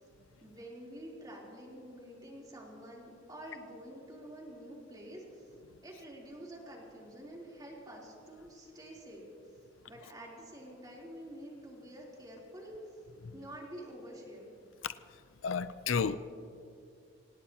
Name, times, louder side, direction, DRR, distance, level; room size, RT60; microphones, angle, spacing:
voice 1, 0.4-5.5 5.8-9.3 9.9-13.0 13.3-14.5, right 1 dB, 20° right, 3.5 m, -48 dB
voice 2, 15.4-16.2, left 6 dB, 85° left, 0.5 m, -32 dB
27.0 x 18.0 x 2.9 m
head